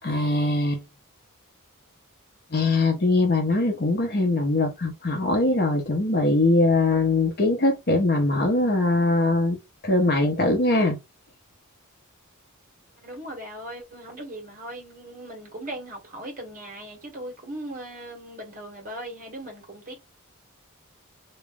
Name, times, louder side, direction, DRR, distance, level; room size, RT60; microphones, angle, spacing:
voice 1, 0.0-0.8 2.5-9.6 9.8-11.0, left 2 dB, 45° left, 1.0 m, -22 dB
voice 2, 13.0-19.9, right 1 dB, 40° right, 1.7 m, -38 dB
3.1 x 2.8 x 3.5 m
head